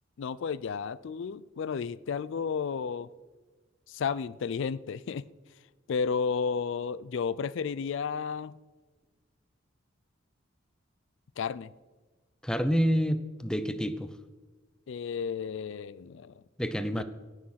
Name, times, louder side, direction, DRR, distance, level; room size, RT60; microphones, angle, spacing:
voice 1, 0.2-3.1 3.9-5.3 5.9-8.5 11.4-11.7 14.9-16.3 16.9-17.0, left 6 dB, 65° left, 19 dB, 0.4 m, -32 dB
voice 2, 12.4-14.1 16.6-17.0, equal, 5° left, 11 dB, 0.6 m, -28 dB
17.0 x 6.4 x 5.7 m, 1.3 s
head